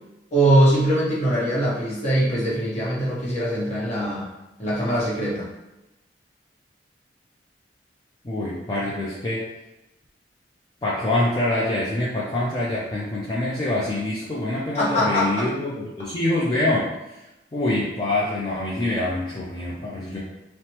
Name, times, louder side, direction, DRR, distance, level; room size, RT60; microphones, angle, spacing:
voice 1, 0.3-4.3 4.6-5.4 14.7-15.4, right 1 dB, 40° left, -6 dB, 0.9 m, -22 dB
voice 2, 8.2-9.4 10.8-16.9 17.5-20.2, left 1 dB, 25° left, -7 dB, 0.4 m, -25 dB
3.1 x 2.0 x 2.9 m, 0.98 s
head